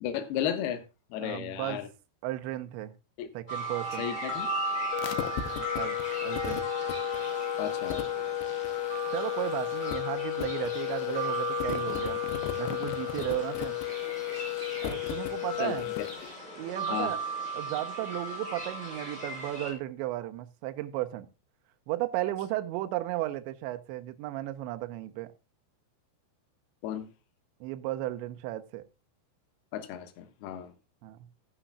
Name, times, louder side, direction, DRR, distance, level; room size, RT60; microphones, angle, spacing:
voice 1, 0.0-0.8 1.1-1.9 3.2-3.3 4.0-4.5 7.6-8.0 15.6-15.7 16.9-17.1 26.8-27.1 29.7-30.7, left 10 dB, 70° left, 2.6 m, -33 dB
voice 2, 1.2-1.9 2.2-2.9 3.3-4.1 5.6-6.6 9.1-12.2 12.6-13.8 14.8-15.9 16.6-17.2 17.5-21.3 21.9-25.3 27.6-28.8 31.0-31.3, right 15 dB, 80° right, 2.8 m, -34 dB
sound 1, 3.5-19.7, right 2 dB, 10° left, 2.4 m, -37 dB
sound 2, 4.9-16.3, left 16 dB, 90° left, 2.3 m, -33 dB
15.5 x 10.0 x 2.2 m
omnidirectional pair, 5.8 m